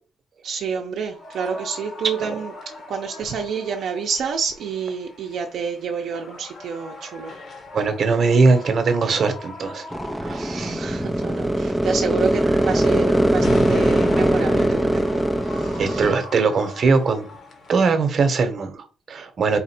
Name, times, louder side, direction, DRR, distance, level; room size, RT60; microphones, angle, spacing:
voice 1, 0.4-2.5 2.9-7.3 10.6-16.1, right 6 dB, 65° right, 0.6 m, -29 dB
sound 1, 1.1-17.7, left 2 dB, 45° left, 1.1 m, -37 dB
voice 2, 7.7-9.8 10.2-11.0 15.8-17.2 17.7-19.6, right 4 dB, 40° right, 0.9 m, -21 dB
sound 2, 9.9-16.1, right 1 dB, ahead, 0.3 m, -21 dB
4.1 x 2.5 x 4.3 m
cardioid pair, 140°, 0 cm